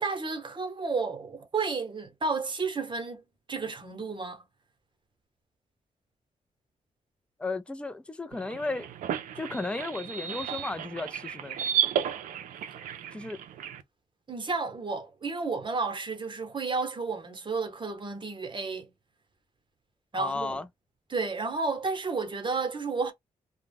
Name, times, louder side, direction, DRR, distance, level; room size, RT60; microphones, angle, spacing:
voice 1, 0.0-3.2 3.5-4.4 14.3-18.9 20.1-20.6 21.1-23.1, right 4 dB, 35° right, 0.9 m, -32 dB
voice 2, 7.4-8.9 9.4-11.6 13.1-13.4 20.1-20.7, left 3 dB, 10° left, 0.4 m, -34 dB
sound 1, 8.3-13.8, right 9 dB, 80° right, 0.4 m, -33 dB
2.2 x 2.1 x 3.3 m
cardioid pair, 65°, 13 cm